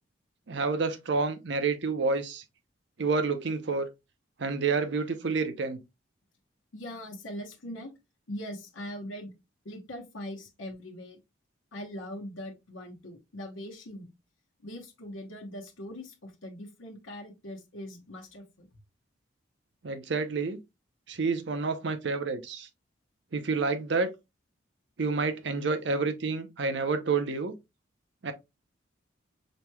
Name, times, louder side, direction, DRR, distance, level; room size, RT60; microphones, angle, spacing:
voice 1, 0.5-2.4 3.0-3.9 4.4-5.8 19.8-20.6 21.1-22.7 23.3-24.1 25.0-27.5 28.2-28.3, right 4 dB, 65° right, 0.6 m, -29 dB
voice 2, 6.7-7.9 8.3-9.3 9.6-11.2 11.7-14.1 14.6-18.7, left 1 dB, 80° left, 1.0 m, -41 dB
5.1 x 3.0 x 2.2 m
head